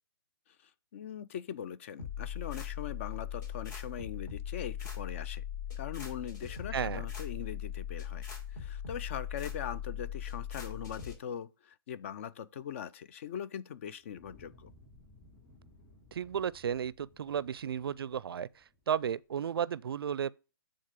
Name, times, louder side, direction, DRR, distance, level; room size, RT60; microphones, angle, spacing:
voice 1, 0.9-5.4 5.8-8.2 8.5-14.7, left 9 dB, 35° left, 0.4 m, -41 dB
sound 1, 2.0-11.1, left 9 dB, 50° left, 3.3 m, -39 dB
Fire, 14.0-19.2, left 1 dB, 15° left, 4.5 m, -60 dB
voice 2, 16.1-20.3, right 8 dB, 75° right, 0.4 m, -34 dB
8.7 x 3.8 x 4.9 m
hypercardioid pair, 155°, 12 cm